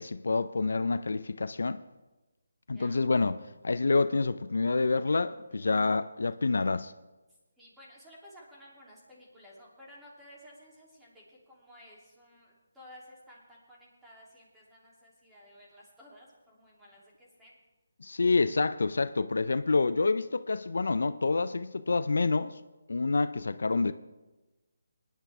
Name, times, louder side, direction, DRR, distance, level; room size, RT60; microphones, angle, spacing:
voice 1, 0.0-1.8 2.7-6.9 18.0-22.5 22.9-23.9, left 3 dB, 70° left, 0.5 m, -27 dB
voice 2, 2.7-3.1 5.5-5.8 7.6-17.6, equal, 5° right, 2.9 m, -54 dB
22.0 x 10.5 x 3.5 m
figure-of-eight pair, 155°, 0 cm